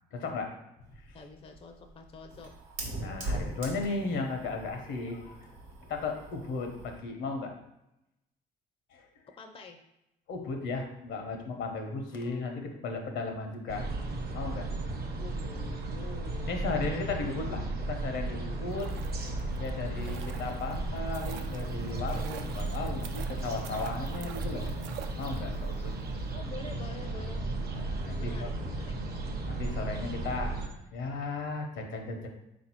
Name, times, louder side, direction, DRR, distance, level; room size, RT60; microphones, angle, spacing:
voice 1, 0.1-0.5 0.9-1.2 3.0-5.5 5.9-7.5 8.9-9.1 10.3-13.9 14.3-14.9 16.4-18.9 19.6-24.6 25.2-25.9 27.7-28.5 29.5-32.3, left 3 dB, 70° left, 4 dB, 0.8 m, -36 dB
Fire, 0.8-7.0, right 2 dB, 90° right, 1.0 m, -41 dB
voice 2, 1.1-2.5 9.4-9.8 15.2-16.5 16.9-17.2 26.3-27.5 28.2-29.0, left 3 dB, 30° left, 5 dB, 0.5 m, -46 dB
sound 1, 13.7-30.7, right 2 dB, 50° right, 0.8 m, -35 dB
sound 2, 18.6-25.7 26.0-26.1, right 8 dB, 70° right, 0.4 m, -47 dB
3.9 x 2.6 x 4.3 m, 0.87 s
supercardioid pair, 70°, 20 cm